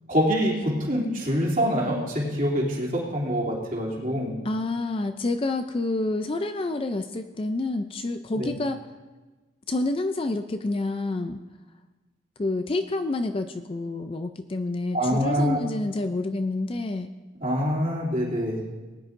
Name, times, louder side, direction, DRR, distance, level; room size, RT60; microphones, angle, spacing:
voice 1, 0.1-4.3 8.3-8.5 14.9-15.6 17.4-18.6, equal, 40° right, -5 dB, 2.8 m, -25 dB
voice 2, 4.4-8.8 9.7-11.4 12.4-17.1, left 2 dB, 25° left, 8 dB, 0.4 m, -28 dB
19.5 x 10.5 x 2.6 m, 1.2 s
head